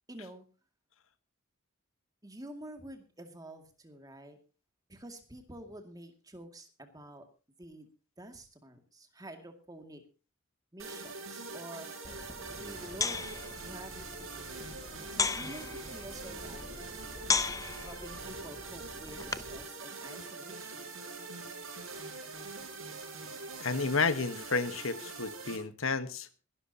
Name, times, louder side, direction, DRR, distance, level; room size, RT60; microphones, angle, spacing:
voice 1, 0.1-0.5 2.2-4.4 4.9-7.3 7.6-7.9 8.2-10.0 10.7-12.2 12.5-13.2 13.6-17.4 17.8-20.9 21.9-22.0, right 1 dB, 20° right, 6 dB, 2.2 m, -49 dB
sound 1, 10.8-25.6, right 3 dB, 75° right, 6.3 m, -44 dB
sound 2, 12.0-19.6, left 4 dB, 15° left, 0.6 m, -37 dB
voice 2, 23.6-26.3, left 4 dB, 80° left, 12 dB, 1.2 m, -31 dB
22.0 x 12.5 x 2.8 m, 0.33 s
head